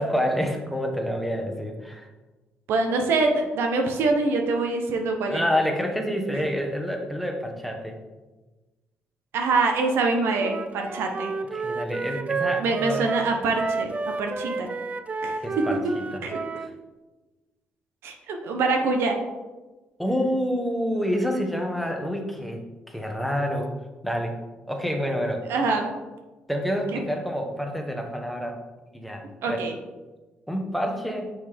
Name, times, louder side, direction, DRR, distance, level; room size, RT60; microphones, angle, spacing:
voice 1, 0.0-2.1 5.3-8.0 11.5-13.1 15.4-16.2 16.5-16.7 20.0-23.7 24.0-24.4 24.6-25.5 26.5-28.6 28.9-29.6 30.5-31.3, equal, ahead, 2 dB, 1.1 m, -28 dB
voice 2, 2.7-5.4 9.3-11.3 12.6-13.9 14.2-14.7 15.2-15.6 16.2-16.4 18.0-19.2 25.5-25.9 26.9-27.0 29.4-29.8, right 3 dB, 75° right, 3 dB, 0.9 m, -24 dB
Wind instrument woodwind instrument, 10.4-16.7, right 4 dB, 35° right, 0.4 m, -31 dB
6.3 x 5.4 x 3.6 m, 1.2 s
cardioid pair, 80°, 4 cm